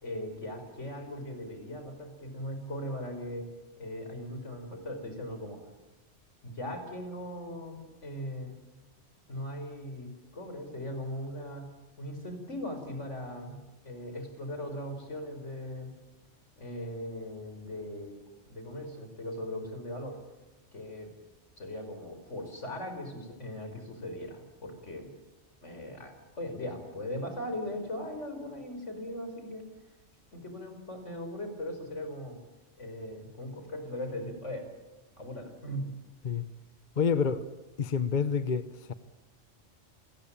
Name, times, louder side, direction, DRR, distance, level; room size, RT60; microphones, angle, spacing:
voice 1, 0.0-3.5 3.8-5.7 6.4-8.5 9.3-11.7 12.0-15.9 16.6-18.2 18.5-20.2 20.7-21.1 21.6-25.1 25.6-29.6 30.3-32.4 32.8-34.7 35.2-35.9, left 1 dB, 85° left, 5.5 m, -39 dB
voice 2, 37.0-37.4 37.8-38.9, left 6 dB, 45° left, 1.1 m, -28 dB
28.5 x 19.5 x 8.9 m
omnidirectional pair, 1.2 m